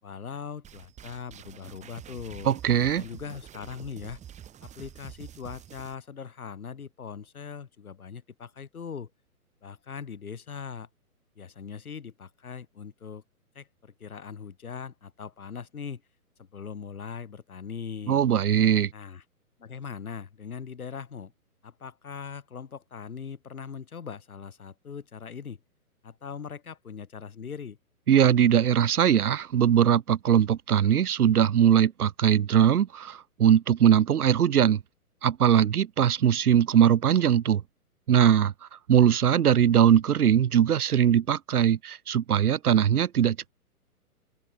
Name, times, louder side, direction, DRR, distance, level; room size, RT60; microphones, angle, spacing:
voice 1, 0.0-2.5 3.0-4.2 4.6-9.1 9.6-10.9 11.4-13.2 13.5-16.0 16.4-18.2 18.9-19.2 19.6-21.3 21.6-25.6 26.0-27.8, left 6 dB, 70° left, 4.5 m, -40 dB
sound 1, 0.6-5.9, right 10 dB, 15° right, 4.5 m, -47 dB
voice 2, 2.5-3.0 18.1-18.9 28.1-34.8 35.2-37.6 38.1-38.5 38.9-43.5, right 9 dB, 75° right, 0.8 m, -21 dB
open air
figure-of-eight pair, 130°, 45 cm